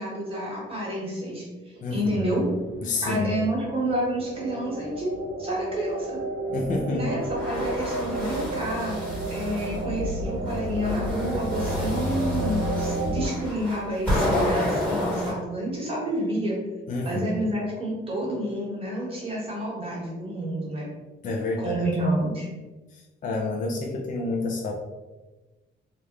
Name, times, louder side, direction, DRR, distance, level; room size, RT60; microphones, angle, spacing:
voice 1, 0.0-1.4 1.7-2.5 3.0-5.1 5.4-6.2 6.9-8.9 9.3-16.6 17.0-20.9 21.6-22.5, right 1 dB, 30° right, -5 dB, 1.3 m, -29 dB
sound 1, 2.3-13.3, right 1 dB, 80° right, 0.6 m, -31 dB
voice 2, 2.8-3.3 6.5-7.0 16.9-17.2 21.2-21.9 23.2-24.7, left 3 dB, 40° left, -1 dB, 0.5 m, -28 dB
sound 2, 7.2-9.8 10.4-15.3, left 1 dB, 10° left, 1.5 m, -30 dB
3.4 x 2.5 x 3.0 m, 1.2 s
cardioid pair, 135°, 20 cm